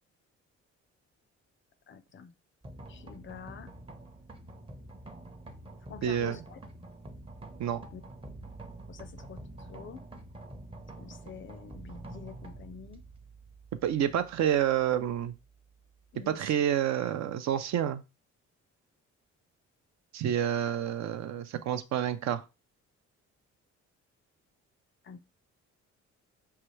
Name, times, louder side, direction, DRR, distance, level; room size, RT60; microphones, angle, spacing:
voice 1, 1.9-2.3 2.9-3.7 5.9-6.6 7.9-8.0 8.9-10.0 11.0-13.0 16.1-16.5 25.0-25.2, left 6 dB, 40° left, 0.5 m, -47 dB
sound 1, 2.6-16.5, right 2 dB, 20° right, 0.6 m, -48 dB
voice 2, 6.0-6.4 7.6-7.8 13.8-15.3 16.3-18.0 20.1-22.4, right 10 dB, 65° right, 0.5 m, -28 dB
5.6 x 2.3 x 3.1 m
cardioid pair, 90°, 30 cm